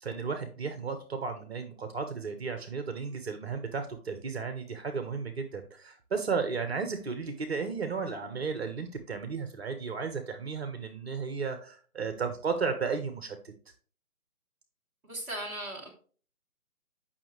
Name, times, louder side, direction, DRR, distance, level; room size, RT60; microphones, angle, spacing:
voice 1, 0.0-13.5, right 5 dB, 45° right, 7 dB, 1.1 m, -34 dB
voice 2, 15.0-15.9, right 1 dB, 5° right, -8 dB, 1.4 m, -37 dB
8.8 x 6.0 x 3.1 m, 0.41 s
figure-of-eight pair, 150°, 44 cm